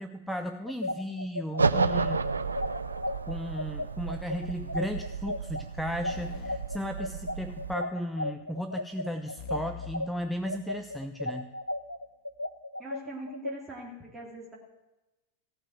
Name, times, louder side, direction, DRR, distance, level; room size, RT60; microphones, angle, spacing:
voice 1, 0.0-2.2 3.3-11.5, equal, ahead, 6 dB, 0.6 m, -35 dB
sound 1, 0.7-10.1 10.4-13.5, left 1 dB, 85° left, 0.5 m, -34 dB
sound 2, 1.6-7.7, right 4 dB, 75° right, 0.4 m, -32 dB
sound 3, 6.1-7.7 9.4-11.1, left 10 dB, 50° left, 0.7 m, -47 dB
voice 2, 12.8-14.6, equal, 15° right, -4 dB, 2.4 m, -42 dB
16.0 x 5.5 x 7.9 m, 1.1 s
figure-of-eight pair, 90°, 0 cm